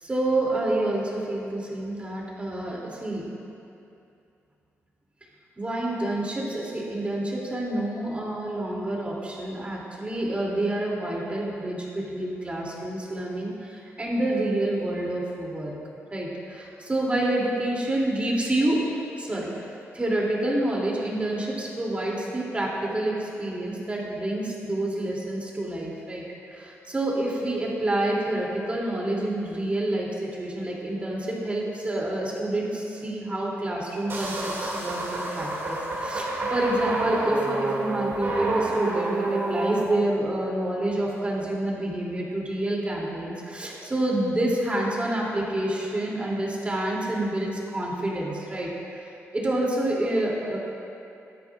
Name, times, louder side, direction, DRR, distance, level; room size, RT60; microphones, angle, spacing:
voice 1, 0.0-3.3 5.6-15.7 16.1-19.5 19.9-26.2 26.6-48.7 49.3-50.6, right 1 dB, 25° right, -4 dB, 3.1 m, -28 dB
sound 1, 34.1-39.8, right 2 dB, 50° right, 2.6 m, -28 dB
17.0 x 13.0 x 2.6 m, 2.6 s
cardioid pair, 90°, 5 cm